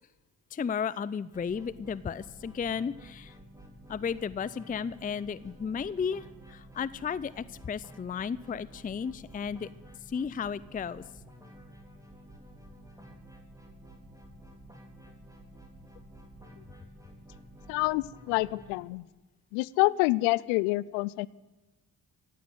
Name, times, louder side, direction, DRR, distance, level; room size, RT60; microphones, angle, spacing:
voice 1, 0.5-3.3 3.9-9.7 10.1-11.0, left 6 dB, 20° left, 18 dB, 0.5 m, -34 dB
sound 1, 1.3-18.8, equal, 5° right, 3.9 m, -51 dB
voice 2, 17.7-19.1 19.5-21.3, left 21 dB, 85° left, 23 dB, 0.5 m, -27 dB
16.0 x 8.5 x 9.2 m, 1.2 s
hypercardioid pair, 45°, 47 cm